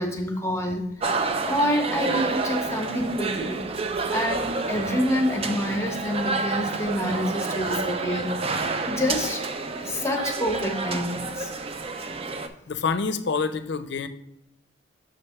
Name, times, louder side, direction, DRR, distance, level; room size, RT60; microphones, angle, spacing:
voice 1, 0.0-3.7 4.1-9.4 9.8-11.5, equal, 15° left, 3 dB, 0.9 m, -27 dB
sound 1, 1.0-12.5, right 3 dB, 30° right, 0.4 m, -29 dB
voice 2, 12.7-14.1, left 5 dB, 65° left, 11 dB, 0.5 m, -27 dB
6.5 x 3.3 x 5.6 m, 0.79 s
head